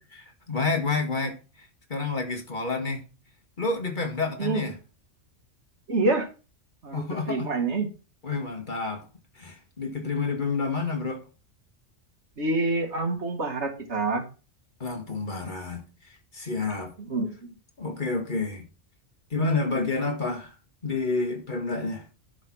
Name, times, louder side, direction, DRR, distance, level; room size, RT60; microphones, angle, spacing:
voice 1, 0.2-3.0 3.6-4.7 6.9-7.5 8.2-9.1 9.4-11.2 14.8-15.8 16.3-16.9 17.8-18.7 19.3-20.5 20.8-22.1, left 3 dB, 40° left, 1.8 m, -29 dB
voice 2, 4.4-4.7 5.9-6.3 6.8-7.9 12.4-14.3 17.0-17.4, right 3 dB, 65° right, 1.9 m, -27 dB
11.0 x 4.1 x 6.2 m
omnidirectional pair, 1.3 m